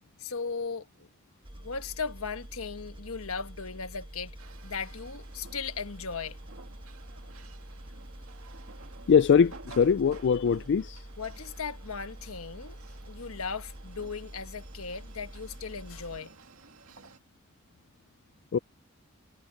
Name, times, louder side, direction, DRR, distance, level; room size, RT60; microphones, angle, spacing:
voice 1, 0.2-1.1 1.5-4.4 4.6-6.4 11.2-12.7 13.1-16.3, left 5 dB, 80° left, 1.3 m, -37 dB
sound 1, 1.4-16.2, right 1 dB, 25° right, 1.4 m, -46 dB
sound 2, 4.4-17.2, right 3 dB, 80° right, 2.1 m, -53 dB
voice 2, 9.1-11.1 18.5-18.6, left 6 dB, 55° left, 0.3 m, -22 dB
head